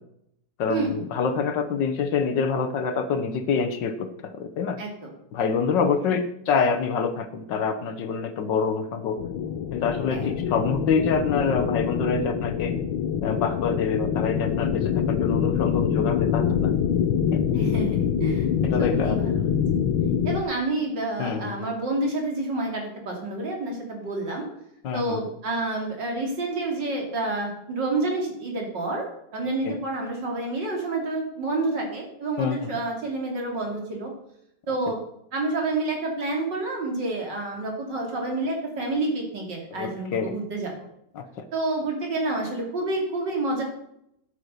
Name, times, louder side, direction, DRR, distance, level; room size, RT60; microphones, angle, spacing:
voice 1, 0.6-4.8 5.3-9.2 9.7-12.7 13.2-16.8 17.3-17.4 18.6-19.3 21.2-21.7 24.8-25.2 29.6-29.8 32.4-32.7 39.7-40.3 41.2-41.4, left 5 dB, 70° left, 9 dB, 1.6 m, -26 dB
voice 2, 4.8-5.1 10.1-10.3 17.5-18.5 18.8-19.5 20.2-24.5 24.9-29.1 29.3-34.1 34.7-35.0 35.3-40.7 41.5-43.6, right 2 dB, 65° right, 0 dB, 3.6 m, -29 dB
sound 1, 9.2-20.4, left 8 dB, 85° left, 1.5 m, -25 dB
10.5 x 8.5 x 6.7 m, 0.77 s
omnidirectional pair, 2.1 m